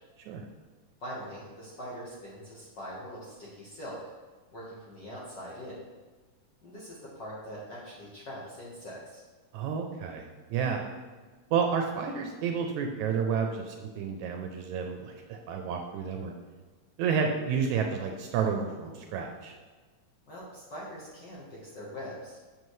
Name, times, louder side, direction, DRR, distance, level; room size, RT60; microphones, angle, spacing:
voice 1, 1.0-4.0 4.5-5.9 6.6-9.2 20.3-22.4, equal, 55° left, -6 dB, 1.2 m, -42 dB
voice 2, 9.5-10.9 11.5-16.3 17.0-19.5, right 6 dB, 80° right, 3 dB, 1.8 m, -30 dB
7.3 x 6.6 x 3.1 m, 1.3 s
omnidirectional pair, 3.7 m